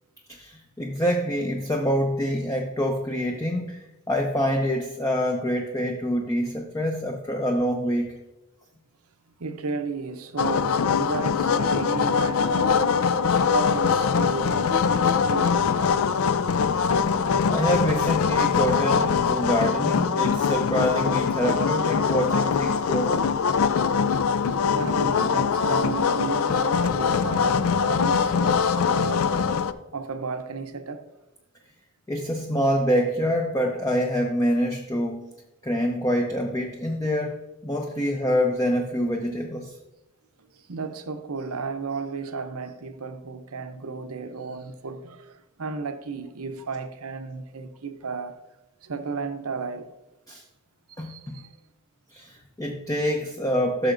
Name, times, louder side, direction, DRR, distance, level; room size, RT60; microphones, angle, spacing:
voice 1, 0.3-8.2 16.8-17.1 17.5-23.2 32.1-35.2 35.6-39.8 50.3-50.4 51.0-51.4 52.1-53.9, equal, 15° left, 0.5 m, -26 dB
voice 2, 9.4-13.1 13.5-14.8 15.2-16.3 24.7-28.6 28.9-29.5 29.9-31.0 40.5-48.4 48.8-49.9 50.9-51.5, right 4 dB, 75° right, 0.7 m, -34 dB
sound 1, 10.4-29.7, left 6 dB, 70° left, 0.4 m, -23 dB
14.0 x 6.5 x 2.6 m
head